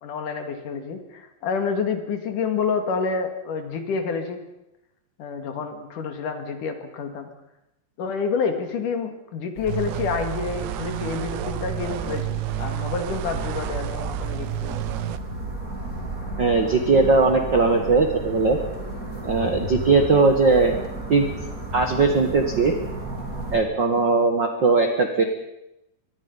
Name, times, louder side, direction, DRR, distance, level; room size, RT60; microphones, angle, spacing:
voice 1, 0.0-4.4 5.2-7.3 8.0-14.8, left 5 dB, 60° left, 6 dB, 3.4 m, -28 dB
sound 1, 9.6-23.6, right 2 dB, 25° right, 4.0 m, -34 dB
sound 2, 9.7-15.2, right 14 dB, 90° right, 1.5 m, -30 dB
voice 2, 16.4-18.6 19.2-20.8 21.1-21.3 21.7-22.7 23.5-25.2, right 4 dB, 50° right, 5 dB, 1.3 m, -19 dB
24.5 x 21.5 x 5.5 m, 0.86 s
omnidirectional pair, 4.3 m